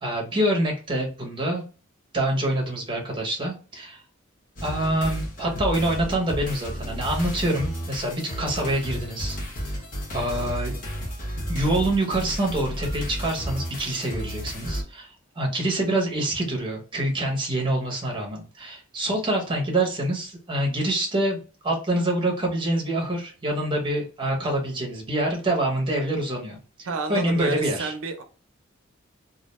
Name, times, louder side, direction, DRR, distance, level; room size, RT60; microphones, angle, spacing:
voice 1, 0.0-1.6 2.1-4.0 4.6-9.4 9.7-9.8 10.1-10.7 11.5-15.1 15.4-27.9, right 1 dB, 25° right, 0.7 m, -26 dB
sound 1, 4.6-14.8, equal, 40° left, 0.8 m, -32 dB
voice 2, 26.9-28.2, right 4 dB, 90° right, 0.5 m, -30 dB
2.4 x 2.1 x 2.9 m
head